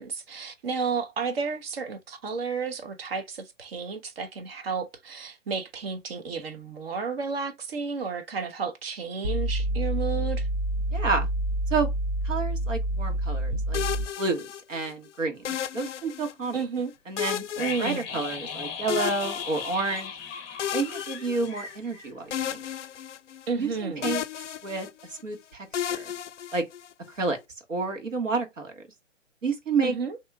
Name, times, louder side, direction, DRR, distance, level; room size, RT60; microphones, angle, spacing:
voice 1, 0.0-10.5 16.5-16.9 17.6-18.1 23.5-24.2 29.8-30.2, right 5 dB, 50° right, 0.8 m, -32 dB
sound 1, 9.2-14.1, right 1 dB, 25° right, 0.4 m, -28 dB
voice 2, 10.9-11.3 11.7-11.9 12.2-13.8 14.2-16.6 17.1-17.4 17.8-20.1 20.7-22.6 23.6-24.2 24.6-26.0 26.5-26.6 27.2-27.4 27.7-28.7 29.4-29.9, right 4 dB, 80° right, 1.5 m, -29 dB
sound 2, 13.7-14.9 15.4-16.6 17.2-18.5 18.9-20.1 20.6-21.9 22.3-23.7 24.0-25.2 25.7-27.1, left 10 dB, 70° left, 0.5 m, -34 dB
sound 3, 17.6-22.4 22.6-22.7, left 6 dB, 15° left, 0.6 m, -37 dB
3.1 x 2.8 x 3.5 m
figure-of-eight pair, 130°, 38 cm